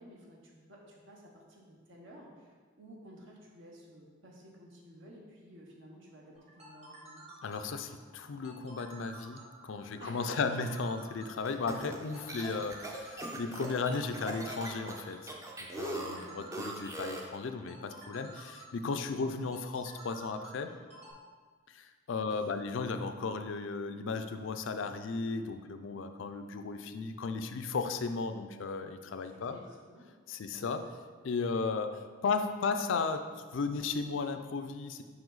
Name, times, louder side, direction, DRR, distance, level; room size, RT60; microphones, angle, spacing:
voice 1, 0.0-7.2 10.0-10.4 16.0-16.5 19.1-19.3 29.3-30.1 30.5-30.8, equal, 65° right, -2 dB, 1.0 m, -54 dB
sound 1, 6.3-21.1, right 2 dB, 30° right, 1.4 m, -52 dB
voice 2, 7.4-15.4 15.8-20.7 21.7-29.6 30.3-30.9 31.2-33.3 33.5-35.0, left 4 dB, 65° left, 7 dB, 0.4 m, -35 dB
sound 2, 11.4-17.4, right 2 dB, 15° right, 0.5 m, -41 dB
5.3 x 4.9 x 3.9 m, 1.5 s
head